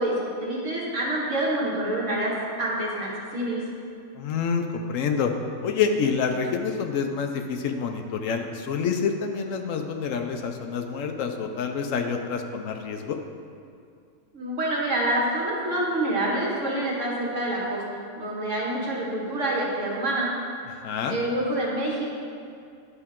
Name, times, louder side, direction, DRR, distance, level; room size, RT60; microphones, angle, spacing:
voice 1, 0.0-3.6 14.3-20.3 21.1-22.0, right 1 dB, 60° right, -4 dB, 1.8 m, -27 dB
voice 2, 4.1-5.3 5.6-13.2 20.7-21.2, left 6 dB, 75° left, 5 dB, 0.9 m, -27 dB
9.9 x 5.9 x 3.6 m, 2.3 s
omnidirectional pair, 1.4 m